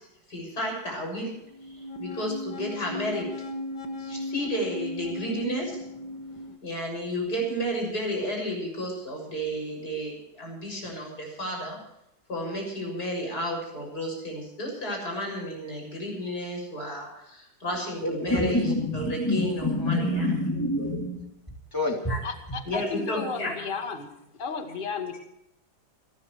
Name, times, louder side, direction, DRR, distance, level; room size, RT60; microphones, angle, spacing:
voice 1, 0.3-1.3 1.7-3.3 4.0-5.8 6.6-11.8 12.3-20.3 22.1-22.2 22.7-23.5, equal, 50° left, 1 dB, 7.4 m, -32 dB
sound 1, 1.4-6.6, left 1 dB, 70° left, 2.6 m, -36 dB
voice 2, 18.4-21.2 21.7-22.1, left 1 dB, 10° left, 1 dB, 3.1 m, -27 dB
voice 3, 22.2-24.1 24.4-25.2, left 5 dB, 25° left, 5 dB, 2.0 m, -33 dB
29.5 x 13.0 x 3.2 m, 0.80 s
omnidirectional pair, 2.1 m